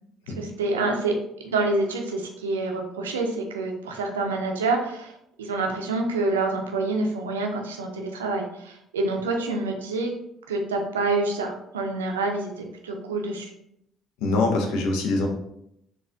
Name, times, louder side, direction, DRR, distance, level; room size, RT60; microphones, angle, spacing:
voice 1, 0.4-1.2 1.4-5.1 5.4-10.1 10.5-13.5, right 3 dB, 90° right, 2 dB, 0.4 m, -27 dB
voice 2, 14.2-15.3, left 3 dB, 75° left, 2 dB, 0.6 m, -23 dB
4.1 x 2.4 x 2.5 m, 0.77 s
hypercardioid pair, 55°, 0 cm